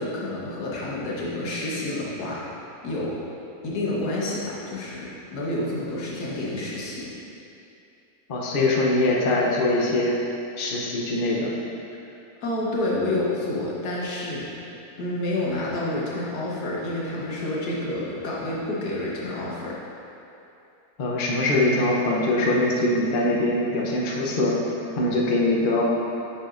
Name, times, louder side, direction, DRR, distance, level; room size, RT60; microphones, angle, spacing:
voice 1, 0.0-2.4 2.8-3.2 3.6-7.1 12.4-14.5 15.0-19.8, left 1 dB, 80° left, -5 dB, 1.7 m, -29 dB
voice 2, 8.3-10.1 10.6-11.5 21.0-24.6 25.0-25.8, left 2 dB, 45° left, -3 dB, 0.8 m, -22 dB
8.3 x 5.9 x 2.5 m, 2.7 s
omnidirectional pair, 1.6 m